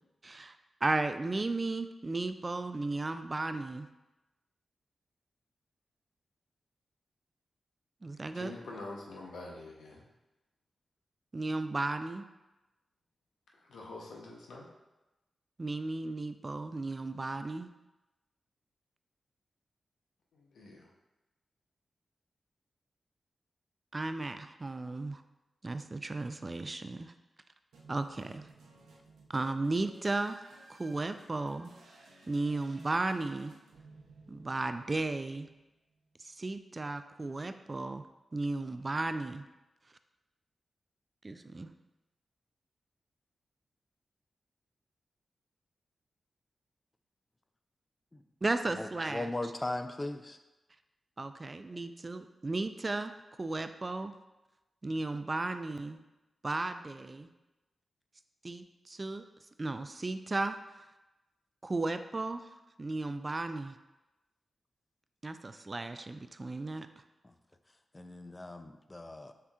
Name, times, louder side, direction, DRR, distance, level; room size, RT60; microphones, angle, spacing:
voice 1, 0.2-3.9 8.0-8.5 11.3-12.2 15.6-17.7 23.9-25.2 25.6-27.1 27.9-28.5 29.3-30.4 30.7-31.7 32.3-33.5 34.3-35.5 36.2-38.0 38.3-39.4 41.2-41.7 48.4-49.3 51.2-53.1 53.4-54.1 54.8-56.0 56.4-57.3 58.4-59.2 59.6-60.8 61.6-63.8 65.2-66.9, right 2 dB, 40° right, 9 dB, 0.3 m, -35 dB
voice 2, 8.3-10.1 13.5-14.7 20.3-20.9, left 2 dB, 80° left, -2 dB, 0.8 m, -46 dB
sound 1, 27.7-36.0, right 2 dB, 90° right, 0.6 m, -58 dB
voice 3, 48.7-50.4 67.2-67.3 67.9-69.3, left 2 dB, 30° left, 8 dB, 0.4 m, -38 dB
5.6 x 3.5 x 2.4 m, 1.0 s
supercardioid pair, 40°, 0 cm